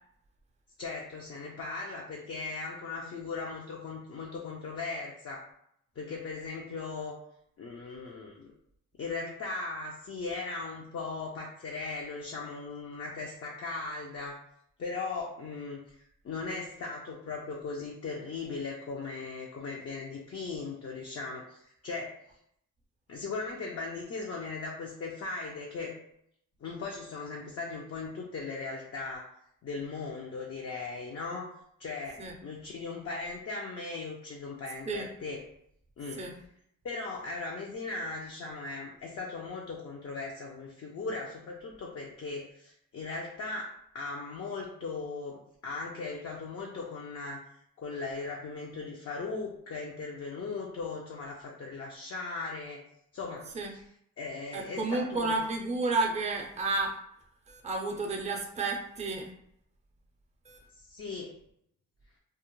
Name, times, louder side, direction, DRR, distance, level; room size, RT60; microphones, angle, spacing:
voice 1, 0.8-5.4 6.0-7.2 7.6-8.5 9.0-14.4 14.8-16.0 16.2-22.2 23.1-25.9 26.6-29.3 29.6-31.5 31.8-35.4 36.0-36.2 36.8-52.8 53.1-53.8 54.2-55.3 60.8-61.3, left 3 dB, 45° left, -2 dB, 0.5 m, -38 dB
voice 2, 54.5-57.0 57.5-59.3 60.5-60.6, right 3 dB, 20° right, 0 dB, 0.5 m, -31 dB
2.3 x 2.1 x 3.0 m, 0.72 s
cardioid pair, 65°, 33 cm